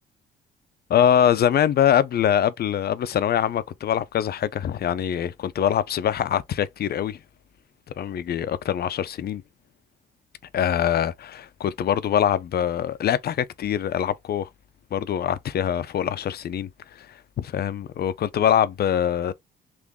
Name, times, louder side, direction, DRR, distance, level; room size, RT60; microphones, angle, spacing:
voice 1, 0.9-7.2 8.0-9.4 10.5-14.5 14.9-16.7 17.4-19.3, left 9 dB, 50° left, 0.5 m, -23 dB
3.7 x 2.5 x 3.5 m
cardioid pair, 90°, 20 cm